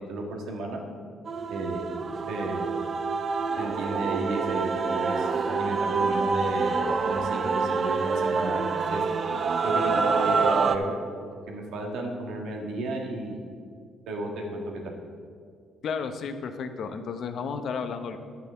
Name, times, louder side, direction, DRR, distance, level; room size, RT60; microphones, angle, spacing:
voice 1, 0.1-0.8 1.5-1.9 2.3-2.7 3.6-9.0 9.6-10.9 11.5-13.4 14.1-14.8, right 2 dB, 85° right, 0 dB, 1.7 m, -33 dB
Male singing / Female singing / Musical instrument, 1.3-10.8, right 4 dB, 50° right, 0.6 m, -26 dB
voice 2, 15.8-18.2, left 5 dB, 65° left, 8 dB, 0.8 m, -32 dB
10.0 x 6.0 x 6.8 m, 2.1 s
cardioid pair, 90°, 0 cm